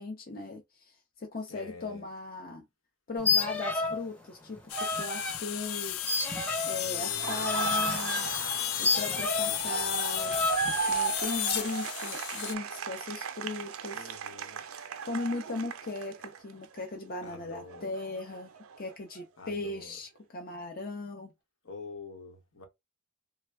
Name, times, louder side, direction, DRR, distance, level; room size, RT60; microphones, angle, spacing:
voice 1, 0.0-2.6 3.1-6.0 6.3-8.3 8.8-10.3 10.9-14.2 14.7-18.5 18.8-21.3, left 3 dB, 45° left, 0.6 m, -38 dB
voice 2, 1.5-2.0 6.6-7.5 9.5-9.9 13.9-14.6 17.2-17.9 19.4-20.0 21.6-22.7, left 4 dB, 70° left, 1.0 m, -46 dB
sound 1, 3.2-4.1 4.3-5.4 6.1-9.6 10.2-10.9, left 3 dB, 5° left, 0.6 m, -30 dB
sound 2, 4.7-12.5, left 13 dB, 85° left, 0.4 m, -34 dB
Laughter, 7.0-16.9 17.2-19.2, right 6 dB, 85° right, 0.5 m, -37 dB
3.3 x 2.1 x 3.3 m
head